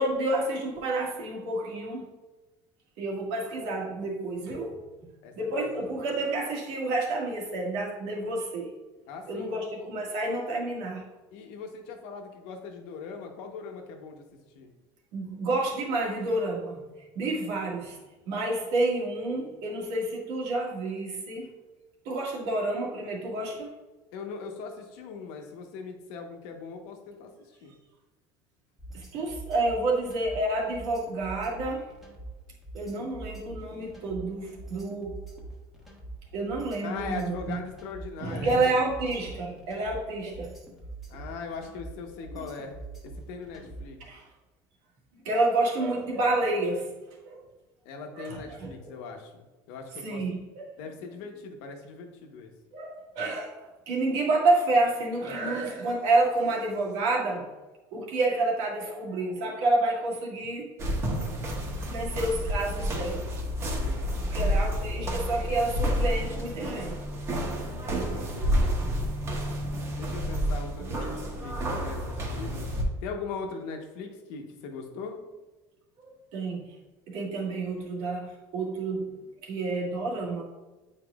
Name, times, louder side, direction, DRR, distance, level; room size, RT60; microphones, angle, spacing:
voice 1, 0.0-2.1 3.0-4.8 5.4-8.7 9.3-11.1 15.1-16.9 17.2-18.0 18.3-21.5 22.1-23.7 28.9-31.9 32.7-35.2 36.3-37.6 38.2-40.5 42.3-42.5 44.1-44.2 45.2-46.9 47.2-47.4 48.1-48.7 50.0-50.6 52.7-53.6 53.9-57.5 57.9-60.7 61.9-63.2 64.2-66.9 70.8-71.0 76.0-76.7 77.1-80.4, right 2 dB, 75° right, -2 dB, 1.9 m, -29 dB
voice 2, 5.2-5.7 9.1-9.6 11.3-14.2 14.5-14.7 24.1-27.3 27.6-27.7 36.8-38.7 41.1-42.7 43.3-44.0 47.8-50.2 50.8-52.5 63.6-64.0 68.3-68.6 70.0-72.7 73.0-75.2, left 5 dB, 80° left, 3 dB, 1.1 m, -40 dB
sound 1, 28.8-44.0, right 2 dB, ahead, 1.2 m, -43 dB
sound 2, 60.8-72.8, equal, 30° right, 1.1 m, -30 dB
8.8 x 4.6 x 2.4 m, 1.2 s
cardioid pair, 160°, 9 cm